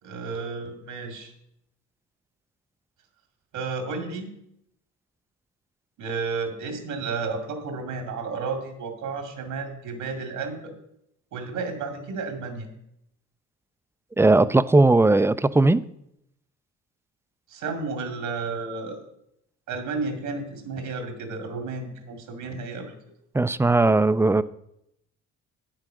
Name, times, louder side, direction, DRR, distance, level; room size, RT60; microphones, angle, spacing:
voice 1, 0.0-1.3 3.5-4.3 6.0-10.7 11.3-12.7 17.5-19.0 19.7-23.0, right 4 dB, 85° right, 5 dB, 2.3 m, -32 dB
voice 2, 14.2-15.8 23.3-24.4, right 2 dB, 10° right, 15 dB, 0.3 m, -18 dB
8.8 x 7.7 x 6.1 m, 0.78 s
cardioid pair, 90°, 30 cm